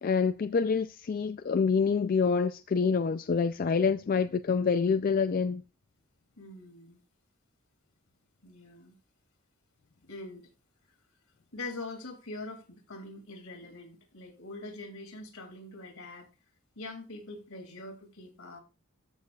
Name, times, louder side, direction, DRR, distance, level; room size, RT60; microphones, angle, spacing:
voice 1, 0.0-5.6, left 5 dB, 40° left, 0.3 m, -27 dB
voice 2, 6.4-7.0 8.4-8.9 10.1-10.5 11.5-16.3 16.8-18.6, left 2 dB, 70° left, 2.7 m, -43 dB
13.5 x 6.6 x 2.3 m
head